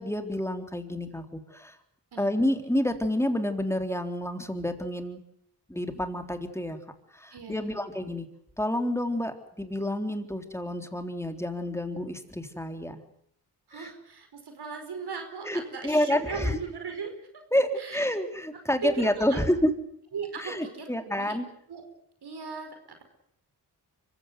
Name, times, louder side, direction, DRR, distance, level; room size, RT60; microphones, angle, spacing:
voice 1, 0.0-1.8 2.2-5.2 5.7-6.8 7.1-8.3 8.6-13.0 13.8-13.9 15.5-16.5 17.5-19.7 20.4-21.5, left 1 dB, 5° left, 7 dB, 3.7 m, -29 dB
voice 2, 2.1-2.5 7.3-7.8 13.7-17.4 17.8-18.1 18.8-19.4 20.1-21.3 21.7-21.8 22.2-23.0, right 5 dB, 65° right, 6 dB, 5.0 m, -38 dB
24.5 x 16.0 x 9.5 m, 0.71 s
cardioid pair, 50°, 41 cm